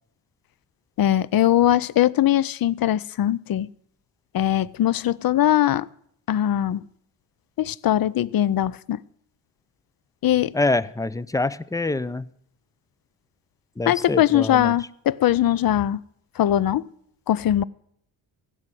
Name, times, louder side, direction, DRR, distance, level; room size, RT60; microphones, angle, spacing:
voice 1, 1.0-3.7 4.3-5.9 6.3-6.8 7.6-9.0 10.2-10.5 13.9-16.0 16.4-16.9 17.3-17.6, left 12 dB, 55° left, 0.6 m, -21 dB
voice 2, 10.5-12.3 13.8-14.7, left 2 dB, 10° left, 0.5 m, -25 dB
16.0 x 6.4 x 9.1 m
cardioid pair, 70°, 44 cm